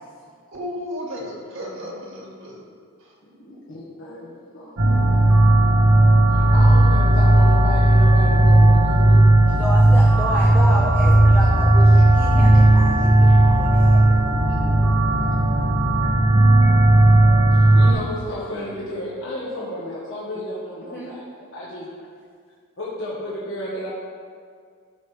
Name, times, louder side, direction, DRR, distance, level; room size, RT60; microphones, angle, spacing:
voice 1, 0.5-2.6 3.0-3.1, left 1 dB, 65° right, -2 dB, 1.9 m, -33 dB
voice 2, 3.2-5.1 6.3-9.3 11.0-11.6 11.9-12.1 17.5-21.9 22.8-23.9, equal, 60° left, -7 dB, 1.5 m, -33 dB
sound 1, 4.8-17.9, right 1 dB, 85° right, 1.6 m, -15 dB
voice 3, 9.6-14.2 20.8-21.1, equal, 5° left, -4 dB, 0.7 m, -31 dB
13.0 x 6.4 x 3.4 m, 2.1 s
head